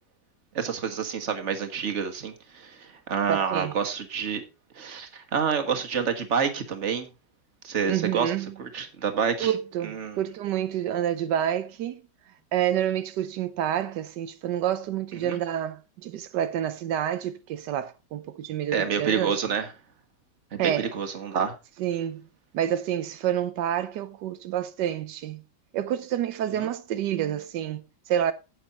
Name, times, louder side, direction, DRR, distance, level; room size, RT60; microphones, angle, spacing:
voice 1, 0.5-4.4 4.7-7.1 7.6-8.3 8.6-9.5 9.8-10.2 15.2-15.4 18.7-19.7 20.5-21.5 26.6-26.7, right 6 dB, 45° right, 1.7 m, -28 dB
voice 2, 3.3-3.7 7.9-8.5 9.4-12.0 12.5-19.3 20.6-21.0 21.8-22.3 22.5-25.4 25.7-28.3, right 10 dB, 85° right, 1.3 m, -28 dB
9.4 x 8.5 x 4.0 m
omnidirectional pair, 1.8 m